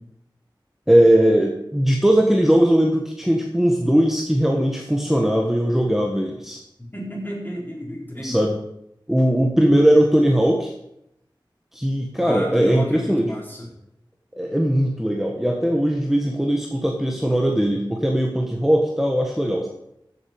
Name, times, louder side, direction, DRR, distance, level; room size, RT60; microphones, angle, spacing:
voice 1, 0.9-6.6 8.2-8.6 9.1-10.7 11.7-13.3 14.4-19.7, equal, 5° right, 1 dB, 1.4 m, -19 dB
voice 2, 6.8-8.5 12.2-13.7, equal, 25° left, -3 dB, 4.5 m, -31 dB
14.5 x 7.6 x 5.3 m, 0.79 s
wide cardioid pair, 60°, 8 cm